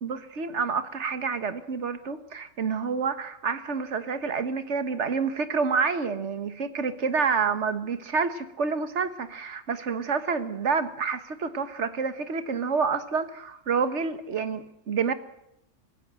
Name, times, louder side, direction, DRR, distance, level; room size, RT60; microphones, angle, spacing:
voice 1, 0.0-15.1, right 5 dB, 65° right, 11 dB, 1.7 m, -28 dB
25.0 x 16.0 x 7.7 m, 0.79 s
omnidirectional pair, 1.3 m